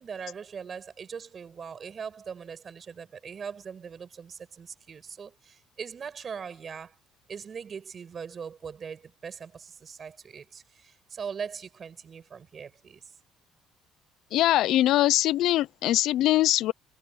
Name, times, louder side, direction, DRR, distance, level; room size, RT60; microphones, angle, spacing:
voice 1, 0.0-7.0 7.3-13.0, right 6 dB, 35° right, 6.7 m, -40 dB
voice 2, 14.3-16.7, left 14 dB, 70° left, 0.7 m, -22 dB
cardioid pair, 140°, 0 cm